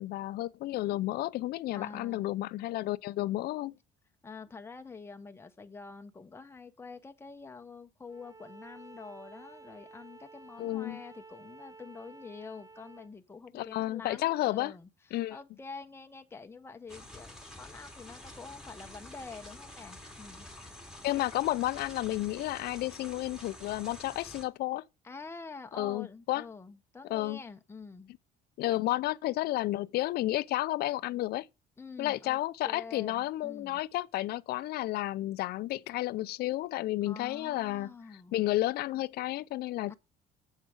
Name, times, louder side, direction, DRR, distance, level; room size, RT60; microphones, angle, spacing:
voice 1, 0.0-3.7 10.6-11.0 13.5-14.7 15.1-15.4 21.0-24.8 25.8-26.4 27.1-27.4 28.6-31.5 32.0-37.9 38.3-39.9, left 16 dB, 70° left, 0.5 m, -32 dB
voice 2, 1.8-2.3 4.2-20.5 25.0-28.1 31.8-32.4 32.6-33.8 37.0-38.3 39.9-40.0, left 4 dB, 15° left, 0.8 m, -47 dB
Bowed string instrument, 8.1-13.1, right 3 dB, 20° right, 0.8 m, -52 dB
sound 1, 16.9-24.4, left 1 dB, 5° right, 2.4 m, -48 dB
7.4 x 6.3 x 6.2 m
cardioid pair, 110°, 17 cm